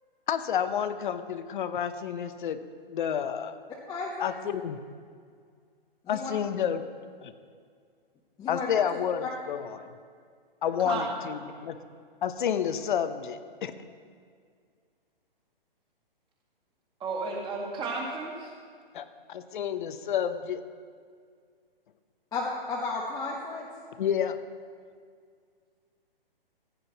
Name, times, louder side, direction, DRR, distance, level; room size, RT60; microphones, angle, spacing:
voice 1, 0.3-2.6 2.9-3.6 4.2-4.8 6.1-6.8 7.2-7.3 8.5-9.9 10.6-11.8 12.2-13.7 18.9-20.6 24.0-24.4, left 8 dB, 55° left, 11 dB, 0.9 m, -30 dB
voice 2, 3.9-4.3 6.0-6.3 8.4-8.9 9.2-9.3 22.3-23.7, left 3 dB, 15° left, -3 dB, 0.9 m, -33 dB
voice 3, 17.0-18.5, right 3 dB, 15° right, -2 dB, 2.1 m, -33 dB
16.0 x 9.5 x 4.1 m, 2.1 s
hypercardioid pair, 135°, 29 cm